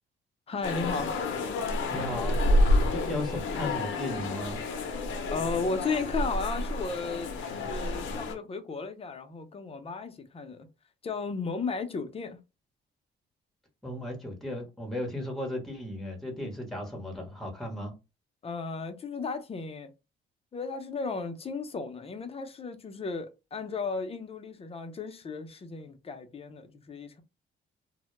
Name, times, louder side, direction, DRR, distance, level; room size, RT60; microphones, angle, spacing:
voice 1, 0.5-1.1 5.3-10.7 11.0-12.4 18.4-19.9 20.5-27.2, left 4 dB, 30° left, 0.5 m, -35 dB
sound 1, 0.6-8.3, left 1 dB, 75° left, 0.5 m, -29 dB
voice 2, 1.9-2.4 2.8-4.6 13.8-17.9, left 1 dB, ahead, 0.9 m, -35 dB
2.1 x 2.0 x 3.0 m
cardioid pair, 90°, 20 cm